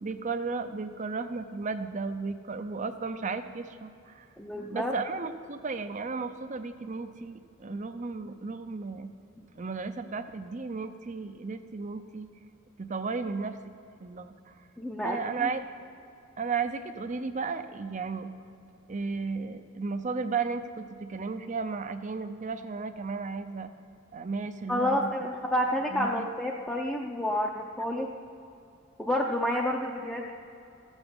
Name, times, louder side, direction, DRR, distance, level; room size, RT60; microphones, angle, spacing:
voice 1, 0.0-4.3 4.7-9.1 9.6-12.3 12.8-13.6 14.0-14.5 15.0-15.6 16.4-18.3 18.9-23.7 24.1-25.1 25.9-26.3, right 4 dB, 35° right, 9 dB, 0.6 m, -34 dB
voice 2, 4.4-4.9 9.4-9.5 14.8-15.5 24.7-28.1 29.0-30.4, left 1 dB, 5° left, -3 dB, 0.6 m, -29 dB
14.5 x 8.1 x 7.0 m, 2.7 s
head